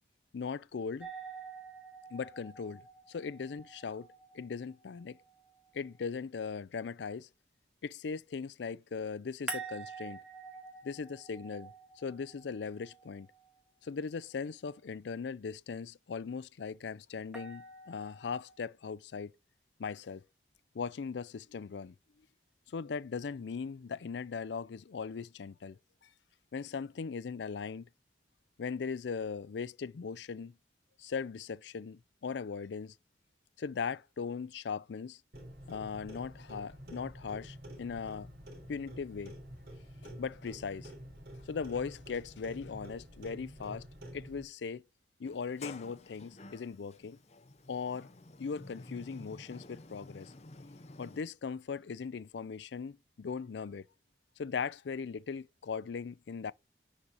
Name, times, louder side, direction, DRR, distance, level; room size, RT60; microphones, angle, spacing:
voice 1, 0.3-1.1 2.1-2.8 3.1-4.1 4.3-5.2 5.7-7.3 7.8-10.2 10.8-13.3 13.8-19.3 19.8-20.2 20.7-21.9 22.7-25.8 26.5-27.9 28.6-30.5 31.0-32.9 33.6-35.2 35.7-38.3 38.7-39.3 40.2-40.9 41.4-43.8 44.1-44.8 45.2-47.2 47.7-48.1 48.4-50.3 51.0-53.8 54.4-56.5, left 5 dB, 75° left, 0.4 m, -39 dB
sound 1, 1.0-6.0 9.5-13.6 17.3-18.5, right 3 dB, 5° right, 1.5 m, -47 dB
Clock, 35.3-44.4, equal, 60° right, 3.6 m, -49 dB
Sliding door, 45.2-51.2, left 2 dB, 35° left, 0.8 m, -51 dB
7.0 x 5.5 x 6.5 m
head